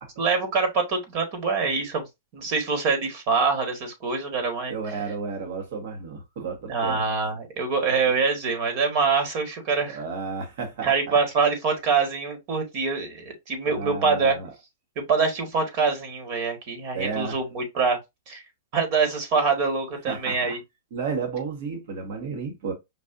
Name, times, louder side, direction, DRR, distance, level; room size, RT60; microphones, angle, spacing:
voice 1, 0.2-2.0 2.3-4.7 6.7-10.0 10.8-14.4 14.9-18.0 18.3-18.4 18.7-20.6, right 4 dB, 45° right, 1.6 m, -25 dB
voice 2, 4.7-7.0 9.8-11.2 13.6-14.5 16.9-17.4 20.1-20.6 20.9-22.7, right 5 dB, 60° right, 1.3 m, -32 dB
5.2 x 2.5 x 2.6 m
hypercardioid pair, 125°, 0 cm